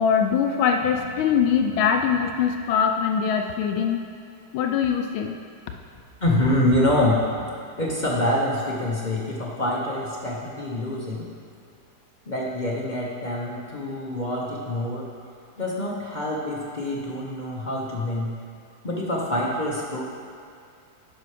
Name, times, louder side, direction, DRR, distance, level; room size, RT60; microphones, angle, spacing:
voice 1, 0.0-4.0 4.5-5.4, left 7 dB, 80° left, 5 dB, 1.4 m, -22 dB
voice 2, 6.2-7.2 7.8-11.3 12.3-15.1 15.6-18.4 18.8-20.0, left 1 dB, 45° left, -5 dB, 0.6 m, -25 dB
10.0 x 5.7 x 4.9 m, 2.4 s
omnidirectional pair, 2.3 m